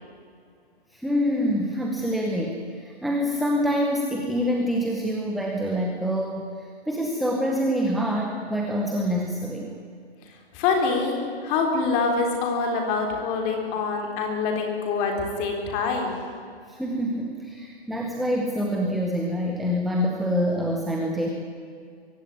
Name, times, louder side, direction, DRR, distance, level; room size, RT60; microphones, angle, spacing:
voice 1, 0.9-9.7 16.7-21.3, equal, ahead, 1 dB, 0.7 m, -26 dB
voice 2, 10.5-16.2, left 4 dB, 20° left, 3 dB, 3.7 m, -25 dB
23.0 x 15.5 x 9.8 m, 2.3 s
hypercardioid pair, 160°, 32 cm